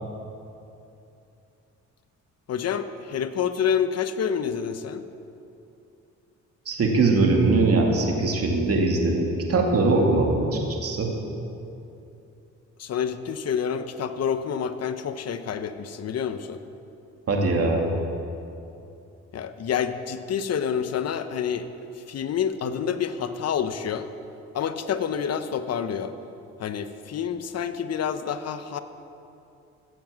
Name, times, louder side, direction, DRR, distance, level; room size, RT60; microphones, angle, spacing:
voice 1, 2.5-5.0 12.8-16.6 19.3-21.7 22.1-24.1 24.5-26.1 26.6-28.8, left 7 dB, 55° left, 10 dB, 0.9 m, -28 dB
voice 2, 6.7-11.1 17.3-17.9, right 3 dB, 50° right, 0 dB, 2.4 m, -21 dB
15.5 x 7.4 x 7.6 m, 2.8 s
cardioid pair, 90°, 30 cm